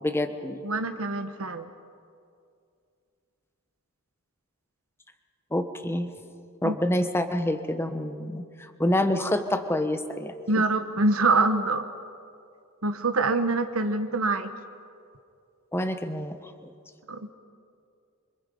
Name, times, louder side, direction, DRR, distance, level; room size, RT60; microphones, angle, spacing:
voice 1, 0.0-0.6 5.5-6.1 6.6-10.3 15.7-16.5, left 1 dB, 10° left, 7 dB, 1.2 m, -27 dB
voice 2, 0.6-1.7 6.6-6.7 10.5-11.8 12.8-14.5 17.1-17.3, right 3 dB, 75° right, 8 dB, 1.2 m, -25 dB
29.0 x 25.0 x 5.4 m, 2.4 s
head